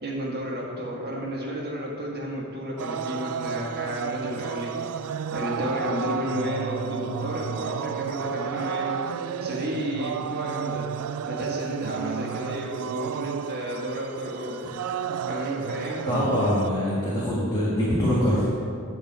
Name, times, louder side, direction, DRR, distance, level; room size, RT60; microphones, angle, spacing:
voice 1, 0.0-10.9 11.2-14.7 15.3-16.1, equal, 50° right, -4 dB, 1.7 m, -32 dB
sound 1, 2.8-16.7, right 8 dB, 75° right, 0.3 m, -32 dB
voice 2, 16.0-18.5, equal, 20° left, -8 dB, 1.6 m, -23 dB
10.0 x 4.4 x 7.4 m, 2.4 s
head